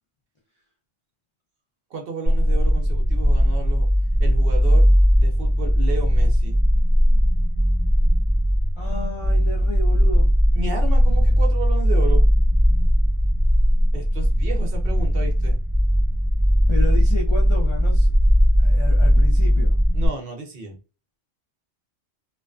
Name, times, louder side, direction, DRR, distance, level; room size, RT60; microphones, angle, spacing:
voice 1, 1.9-3.9 4.2-4.9 5.2-6.6 10.5-12.2 13.9-15.6 19.9-20.8, right 3 dB, 55° right, 0.8 m, -33 dB
sound 1, 2.3-20.1, equal, 20° right, 0.6 m, -18 dB
voice 2, 8.8-10.3 16.7-18.1 18.6-19.8, left 2 dB, 55° left, 0.3 m, -32 dB
2.4 x 2.2 x 2.3 m
omnidirectional pair, 1.2 m